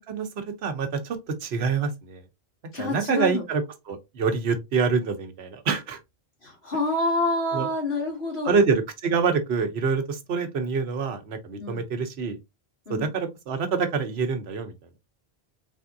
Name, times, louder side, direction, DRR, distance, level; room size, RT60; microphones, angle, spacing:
voice 1, 0.1-2.2 2.8-6.0 7.5-7.7 8.4-12.4 12.9-14.7, right 5 dB, 80° right, 1.1 m, -26 dB
voice 2, 2.7-3.4 6.4-8.6 11.6-11.8 12.9-13.1, left 2 dB, 75° left, 2.2 m, -27 dB
3.6 x 3.5 x 2.6 m
omnidirectional pair, 1.0 m